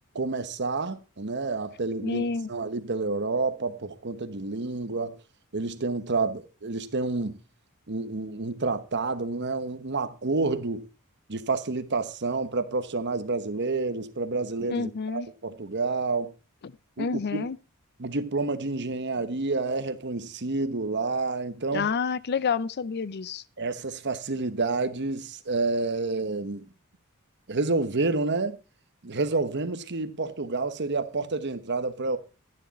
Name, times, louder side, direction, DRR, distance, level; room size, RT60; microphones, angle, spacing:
voice 1, 0.1-2.2 2.5-5.2 5.5-7.4 7.9-10.9 11.3-16.3 17.0-17.5 18.0-21.9 23.6-26.6 27.5-28.6 29.0-32.2, right 3 dB, 55° right, 1.1 m, -29 dB
voice 2, 2.0-2.5 14.7-15.3 16.6-16.7 17.0-17.6 21.7-23.4, left 5 dB, 50° left, 0.5 m, -29 dB
11.5 x 10.0 x 4.1 m
head